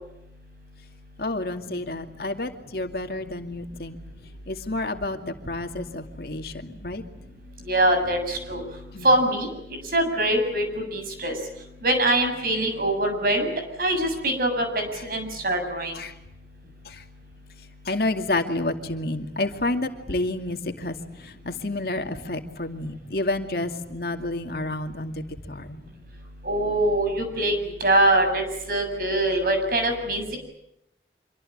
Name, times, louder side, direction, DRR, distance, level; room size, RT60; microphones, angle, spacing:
voice 1, 1.2-4.0 4.5-7.0 8.9-9.1 15.9-16.1 16.9-17.0 17.9-25.8, left 2 dB, 60° left, 5 dB, 2.4 m, -30 dB
voice 2, 7.7-8.6 9.0-9.5 9.9-11.3 11.8-13.5 13.8-15.9 26.4-27.5 27.8-28.4 28.7-30.4, right 1 dB, 55° right, 6 dB, 7.3 m, -23 dB
26.5 x 24.5 x 8.9 m, 0.84 s
head